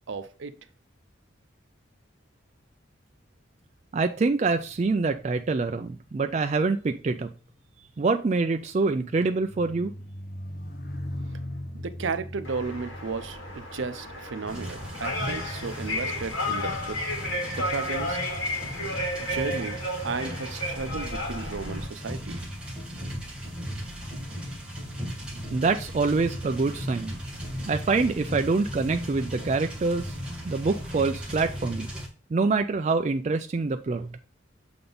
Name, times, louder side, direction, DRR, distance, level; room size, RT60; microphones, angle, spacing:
voice 1, 0.1-0.5 11.7-17.0 17.5-18.2 19.2-19.8 20.0-22.4, right 4 dB, 75° right, 0.6 m, -34 dB
voice 2, 3.9-7.3 8.0-9.9 25.5-27.2 27.7-30.1 30.4-31.9 32.3-34.2, right 3 dB, 35° right, 0.3 m, -25 dB
sound 1, 4.5-16.1 16.8-17.1, left 1 dB, 50° left, 0.8 m, -42 dB
sound 2, 12.4-21.9, left 1 dB, 75° left, 2.1 m, -33 dB
sound 3, 14.5-32.1, equal, 5° right, 1.3 m, -37 dB
6.8 x 3.7 x 3.8 m
head